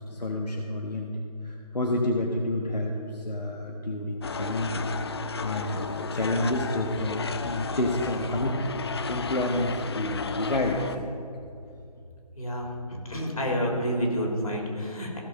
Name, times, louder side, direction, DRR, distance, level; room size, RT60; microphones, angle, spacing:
voice 1, 0.1-1.1 1.4-8.7 9.1-11.1, left 1 dB, 85° left, 0 dB, 1.3 m, -29 dB
sound 1, 4.2-11.0, left 4 dB, 40° left, 0.5 m, -33 dB
voice 2, 12.4-12.7 13.0-15.2, equal, 60° left, 0 dB, 3.2 m, -29 dB
16.0 x 6.5 x 5.3 m, 2.6 s
figure-of-eight pair, 155°, 20 cm